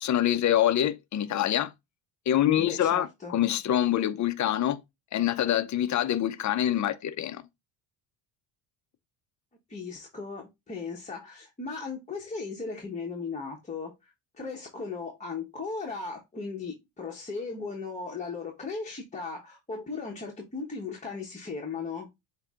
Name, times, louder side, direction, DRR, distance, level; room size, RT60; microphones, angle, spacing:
voice 1, 0.0-1.7 2.3-4.8 5.1-7.4, left 11 dB, 35° left, 0.6 m, -25 dB
voice 2, 2.5-3.3 9.7-22.1, left 4 dB, 15° left, 1.1 m, -37 dB
7.7 x 2.8 x 2.4 m
supercardioid pair, 90°, 49 cm